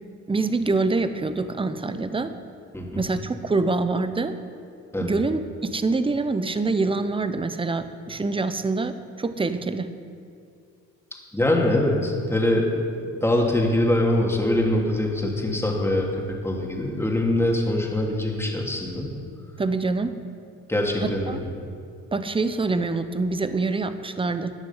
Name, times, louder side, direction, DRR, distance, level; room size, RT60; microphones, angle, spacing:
voice 1, 0.3-2.3 3.0-4.4 5.0-9.9 19.6-20.2 21.0-21.4 22.1-24.5, right 3 dB, 20° right, 11 dB, 0.8 m, -25 dB
voice 2, 2.7-3.0 4.9-5.2 11.3-12.8 13.2-19.1 20.7-21.4, left 1 dB, 10° left, -1 dB, 2.4 m, -23 dB
15.0 x 9.6 x 5.6 m, 2.3 s
cardioid pair, 90°, 30 cm